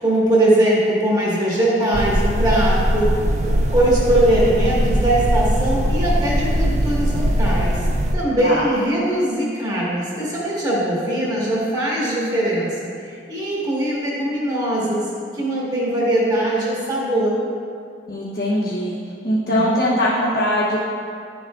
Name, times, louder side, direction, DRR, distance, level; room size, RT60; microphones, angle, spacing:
voice 1, 0.0-3.2 3.7-7.8 8.1-17.4 19.4-19.8, right 1 dB, 20° right, -6 dB, 1.5 m, -21 dB
sound 1, 1.9-8.2, equal, 40° right, 0.4 m, -20 dB
voice 2, 18.1-19.0 19.2-20.8, left 1 dB, 55° left, -7 dB, 1.0 m, -21 dB
11.0 x 7.1 x 2.4 m, 2.3 s
head